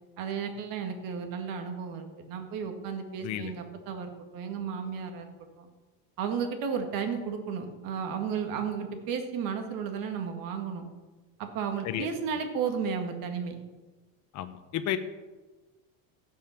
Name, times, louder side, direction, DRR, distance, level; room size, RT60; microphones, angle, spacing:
voice 1, 0.2-5.3 5.6-5.7 6.2-10.9 11.4-13.6, right 6 dB, 60° right, 6 dB, 2.0 m, -33 dB
voice 2, 3.2-3.5 11.8-12.1 14.3-15.0, left 11 dB, 45° left, 9 dB, 0.9 m, -32 dB
15.5 x 5.7 x 6.0 m, 1.2 s
cardioid pair, 130°, 39 cm